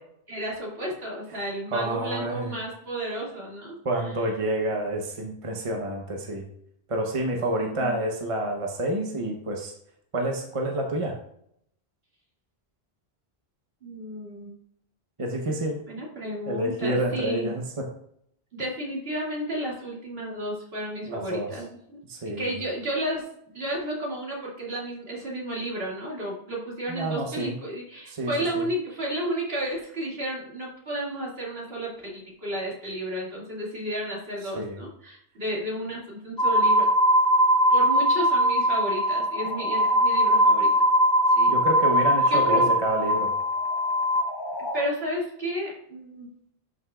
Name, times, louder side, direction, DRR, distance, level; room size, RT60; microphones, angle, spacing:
voice 1, 0.3-3.8 7.6-8.1 13.8-14.6 15.9-17.5 18.5-22.0 22.4-23.3 23.5-36.9 37.7-40.7 41.4-41.5 42.3-42.7 44.7-46.3, equal, 70° right, -4 dB, 2.5 m, -32 dB
voice 2, 1.7-2.6 3.8-6.5 6.9-9.7 10.1-11.2 15.2-15.8 16.5-17.9 21.1-21.5 22.1-22.5 26.9-27.6 28.1-28.6 34.6-34.8 41.5-43.3, right 1 dB, 35° right, 1 dB, 0.9 m, -28 dB
sound 1, 36.4-44.9, equal, 25° left, 0.7 m, -21 dB
11.0 x 5.3 x 2.4 m, 0.70 s
omnidirectional pair, 1.0 m